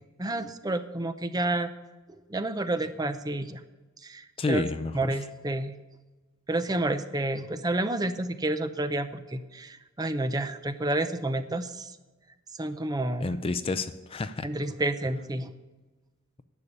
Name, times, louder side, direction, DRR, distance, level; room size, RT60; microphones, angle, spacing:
voice 1, 0.0-1.7 2.3-3.6 4.0-4.6 4.9-5.7 6.5-11.9 12.6-13.3 14.4-15.5, right 2 dB, 20° right, 10 dB, 0.6 m, -30 dB
voice 2, 4.4-5.2 13.2-14.5, left 3 dB, 25° left, 11 dB, 0.4 m, -30 dB
11.0 x 6.8 x 8.6 m, 1.2 s
head